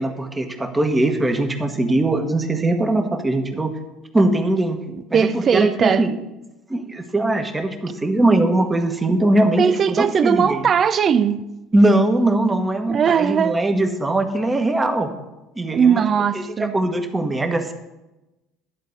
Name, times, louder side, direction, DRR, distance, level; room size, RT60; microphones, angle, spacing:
voice 1, 0.0-3.7 4.1-4.8 5.1-6.1 6.7-9.7 10.0-10.7 11.7-15.1 15.6-16.0 16.3-17.7, right 2 dB, 15° right, 1.2 m, -20 dB
voice 2, 4.9-6.1 9.6-11.4 12.9-13.6 15.7-16.7, right 7 dB, 40° right, 0.5 m, -19 dB
11.0 x 4.0 x 7.8 m
supercardioid pair, 85°, 0 cm